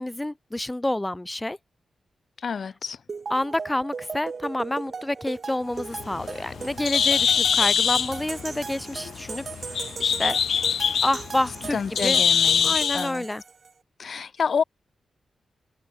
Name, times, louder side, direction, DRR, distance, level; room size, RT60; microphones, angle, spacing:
voice 1, 0.0-1.6 3.3-10.4 11.0-12.2 12.6-13.4, left 1 dB, 10° left, 1.7 m, -28 dB
voice 2, 2.4-3.0 11.7-13.2 14.0-14.6, left 6 dB, 55° left, 1.9 m, -28 dB
sound 1, 3.1-13.7, right 5 dB, 45° right, 2.9 m, -38 dB
Bird, 5.8-13.1, left 7 dB, 75° left, 1.1 m, -24 dB
wide cardioid pair, 110°, 0 cm